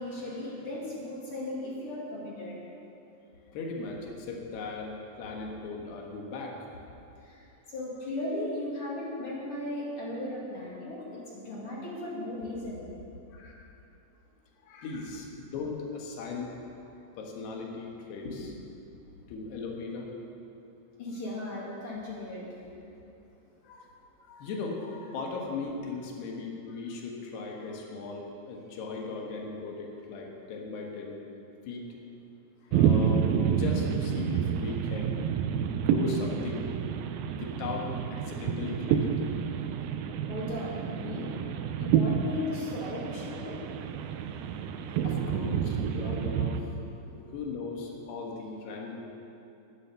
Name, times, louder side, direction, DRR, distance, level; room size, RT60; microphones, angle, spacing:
voice 1, 0.0-2.6 7.2-12.9 18.2-18.4 21.0-22.7 40.3-41.3 41.8-43.6 47.1-47.2, left 2 dB, 40° left, -6 dB, 2.7 m, -37 dB
voice 2, 3.5-4.9 5.2-6.6 13.3-13.7 14.6-16.9 17.2-18.5 19.3-20.1 23.6-31.2 31.7-31.9 32.6-35.2 35.6-36.7 37.3-39.2 45.0-46.7 47.3-48.9, left 4 dB, 85° left, 0 dB, 3.6 m, -38 dB
sound 1, 32.7-46.6, right 8 dB, 80° right, 2.2 m, -29 dB
11.5 x 10.0 x 6.9 m, 2.9 s
omnidirectional pair, 4.6 m